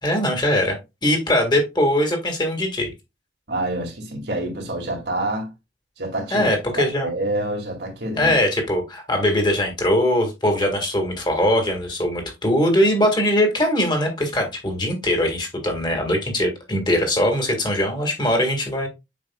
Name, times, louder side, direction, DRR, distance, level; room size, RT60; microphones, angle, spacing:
voice 1, 0.0-0.8 1.0-2.9 6.3-7.1 8.2-18.9, left 1 dB, 25° left, 1.8 m, -21 dB
voice 2, 3.5-5.5 6.0-6.5 6.8-8.3, right 1 dB, 70° right, 2.2 m, -27 dB
7.5 x 5.4 x 2.3 m
head